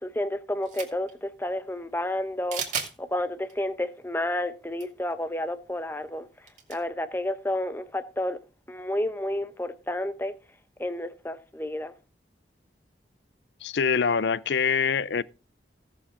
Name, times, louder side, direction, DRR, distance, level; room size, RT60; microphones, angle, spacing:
voice 1, 0.0-2.6 3.0-6.3 6.7-8.4 8.7-10.3 10.8-11.9, left 1 dB, 10° left, 0.7 m, -30 dB
sound 1, 0.6-1.1 2.5-2.9 3.4-3.5 4.7-4.8 5.1-5.2 6.5-6.8, right 7 dB, 40° right, 2.5 m, -33 dB
voice 2, 13.6-15.2, left 6 dB, 80° left, 0.5 m, -24 dB
17.0 x 7.1 x 3.7 m
head